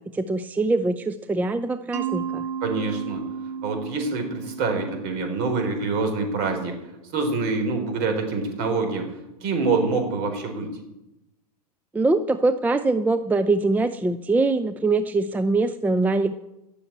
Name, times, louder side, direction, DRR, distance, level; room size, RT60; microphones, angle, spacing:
voice 1, 0.0-2.4 11.9-16.3, right 3 dB, 10° right, 11 dB, 0.5 m, -23 dB
Mallet percussion, 1.9-6.7, right 7 dB, 80° right, 2.5 m, -34 dB
voice 2, 2.6-3.2 3.6-6.8 7.1-10.8, right 4 dB, 50° right, 5 dB, 4.3 m, -26 dB
14.5 x 6.9 x 8.7 m, 0.91 s
hypercardioid pair, 105°, 21 cm